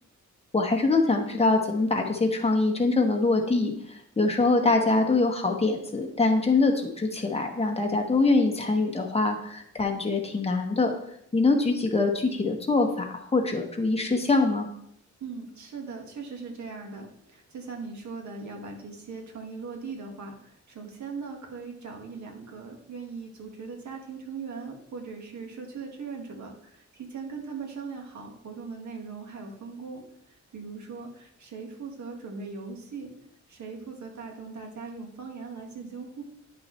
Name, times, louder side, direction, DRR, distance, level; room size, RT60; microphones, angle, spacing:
voice 1, 0.5-10.9 11.3-14.7, left 3 dB, 20° left, 2 dB, 1.3 m, -24 dB
voice 2, 15.2-30.0 30.3-33.1 33.5-36.2, right 4 dB, 70° right, 2 dB, 1.8 m, -39 dB
10.5 x 6.0 x 3.2 m, 0.73 s
wide cardioid pair, 125°, 30 cm